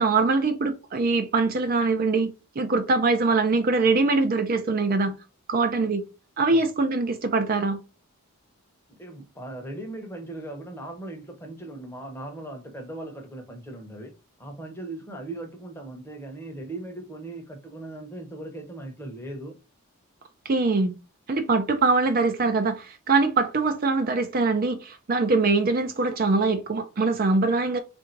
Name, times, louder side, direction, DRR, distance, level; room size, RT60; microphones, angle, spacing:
voice 1, 0.0-5.1 5.5-6.0 6.4-7.8 20.5-20.9 21.3-27.8, right 3 dB, 40° right, 0.4 m, -23 dB
voice 2, 9.0-14.1 14.4-19.6, right 2 dB, 10° left, 0.8 m, -38 dB
3.6 x 2.6 x 4.4 m
head